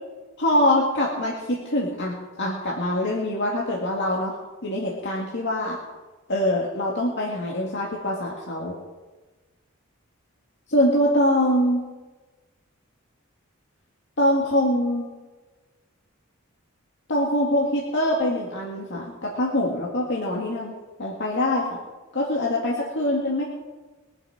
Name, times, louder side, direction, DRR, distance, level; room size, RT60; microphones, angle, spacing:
voice 1, 0.4-4.4 4.6-5.8 6.3-8.8 10.7-11.9 14.2-15.1 17.1-20.7 21.0-21.8 22.1-23.4, left 1 dB, 60° left, -3 dB, 2.2 m, -24 dB
22.5 x 8.1 x 5.0 m, 1.2 s
head